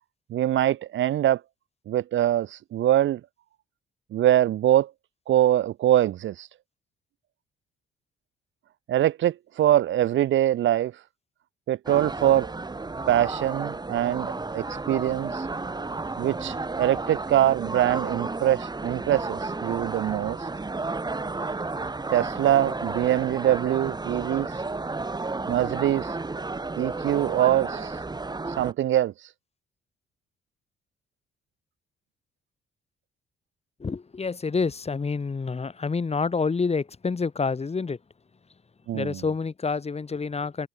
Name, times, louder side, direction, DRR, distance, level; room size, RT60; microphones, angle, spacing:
voice 1, 0.3-1.4 1.9-3.2 4.1-4.9 5.3-6.5 8.9-10.9 11.7-12.5 13.1-15.4 16.2-20.4 22.1-24.5 25.5-26.1 26.8-27.9 28.6-29.1 38.9-39.2, right 12 dB, 70° right, 1.5 m, -23 dB
sound 1, 11.9-28.7, right 3 dB, 20° right, 4.0 m, -32 dB
voice 2, 33.8-38.0 38.9-40.7, left 4 dB, 30° left, 5.2 m, -28 dB
open air
cardioid pair, 90°, 20 cm